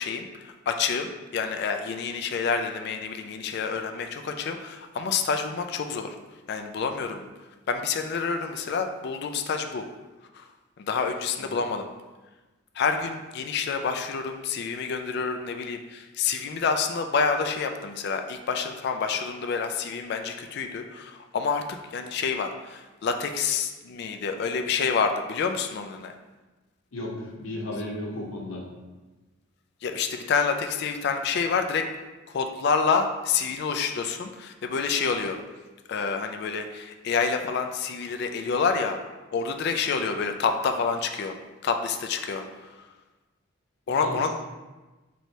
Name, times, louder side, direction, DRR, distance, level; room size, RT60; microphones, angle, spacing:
voice 1, 0.0-6.2 6.5-7.3 7.7-9.8 10.3-10.5 10.8-11.9 12.8-21.6 21.9-26.1 29.8-31.8 32.3-35.4 35.9-39.0 39.3-41.3 41.6-42.7 43.9-44.3, left 5 dB, 55° left, 6 dB, 0.3 m, -28 dB
voice 2, 26.9-28.7 44.0-44.3, left 1 dB, 85° left, -1 dB, 0.8 m, -34 dB
3.1 x 2.7 x 4.5 m, 1.2 s
head